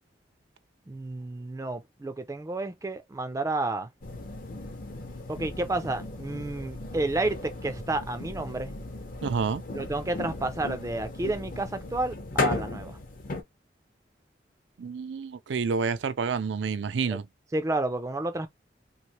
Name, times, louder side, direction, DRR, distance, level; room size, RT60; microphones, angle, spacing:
voice 1, 0.9-3.9 5.3-8.7 9.7-13.0 17.1-17.2 17.5-18.5, right 2 dB, 15° right, 0.3 m, -31 dB
sound 1, 4.0-13.4, left 2 dB, 50° left, 0.6 m, -35 dB
voice 2, 9.2-9.6 14.8-17.3, right 5 dB, 80° right, 0.4 m, -29 dB
3.1 x 2.4 x 2.8 m
head